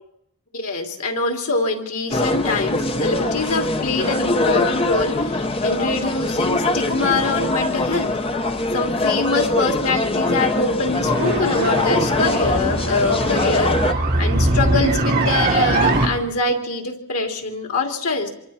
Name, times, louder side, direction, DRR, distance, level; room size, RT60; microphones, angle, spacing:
voice 1, 0.5-8.2 8.7-13.8 14.2-18.3, left 3 dB, 85° left, 2 dB, 3.1 m, -24 dB
sound 1, 2.1-13.9, left 2 dB, 25° left, 0.8 m, -22 dB
sound 2, 11.1-16.1, right 2 dB, 45° right, 3.6 m, -21 dB
27.0 x 24.5 x 4.3 m, 0.77 s
head